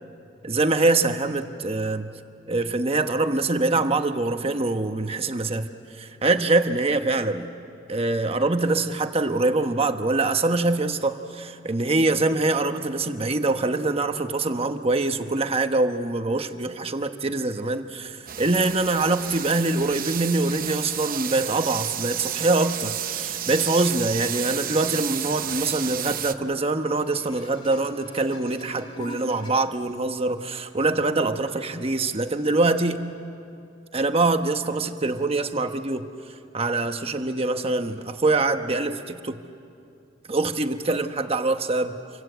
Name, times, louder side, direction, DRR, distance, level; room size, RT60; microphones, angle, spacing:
voice 1, 0.4-2.1 2.5-5.7 6.0-7.5 7.9-33.0 33.9-36.1 36.5-39.4 40.3-42.0, right 2 dB, 30° right, 7 dB, 1.1 m, -24 dB
sound 1, 18.3-26.3, right 10 dB, 45° right, 0.8 m, -31 dB
sound 2, 23.7-24.0 26.6-29.5 30.4-30.5, left 1 dB, 25° left, 2.3 m, -43 dB
28.0 x 24.5 x 8.1 m, 2.5 s
head